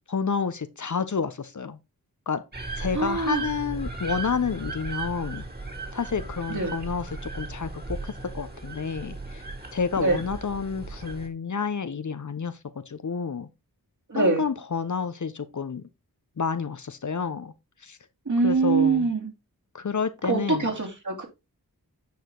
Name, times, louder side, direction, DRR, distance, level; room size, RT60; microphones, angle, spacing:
voice 1, 0.1-1.8 2.3-2.4 2.8-5.4 5.9-9.4 9.7-12.6 12.9-13.5 14.1-15.8 16.4-17.5 17.8-18.0 18.4-19.1 19.7-20.7, left 5 dB, 50° left, 0.8 m, -29 dB
sound 1, 2.5-11.3, right 3 dB, 25° right, 2.3 m, -36 dB
voice 2, 2.9-3.4 6.5-6.7 10.0-10.2 14.1-14.4 18.3-19.3 20.3-21.3, right 4 dB, 50° right, 3.0 m, -24 dB
9.4 x 5.0 x 3.8 m
cardioid pair, 50°, 38 cm